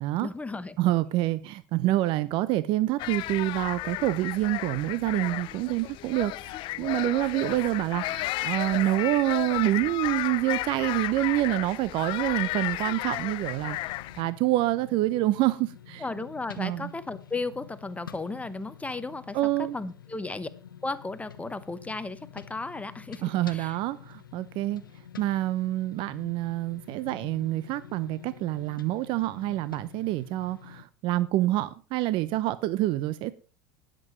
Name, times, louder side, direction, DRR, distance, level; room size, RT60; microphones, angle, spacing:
voice 1, 0.2-0.8 16.0-20.5 20.8-23.8, left 3 dB, 10° left, 0.9 m, -35 dB
voice 2, 0.8-16.0 16.6-16.9 19.3-19.8 23.2-24.8 25.2-33.3, right 16 dB, 50° right, 0.7 m, -27 dB
sound 1, 3.0-14.2, left 18 dB, 50° left, 0.6 m, -33 dB
sound 2, 13.4-30.8, left 9 dB, 90° left, 1.0 m, -48 dB
19.5 x 7.7 x 3.1 m
hypercardioid pair, 85°, 11 cm